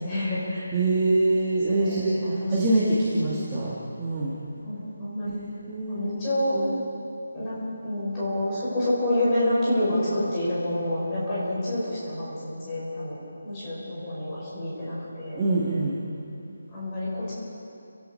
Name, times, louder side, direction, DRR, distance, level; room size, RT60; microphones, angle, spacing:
voice 1, 0.0-0.8 1.7-2.6 3.1-3.4 4.6-5.4 5.9-6.6 7.3-15.4 16.7-17.3, left 1 dB, 10° left, -9 dB, 6.1 m, -28 dB
voice 2, 0.7-4.4 5.2-5.4 5.7-6.2 6.5-6.7 15.4-16.0, right 2 dB, 10° right, -8 dB, 1.7 m, -25 dB
29.5 x 17.0 x 5.6 m, 2.7 s
figure-of-eight pair, 180°, 0 cm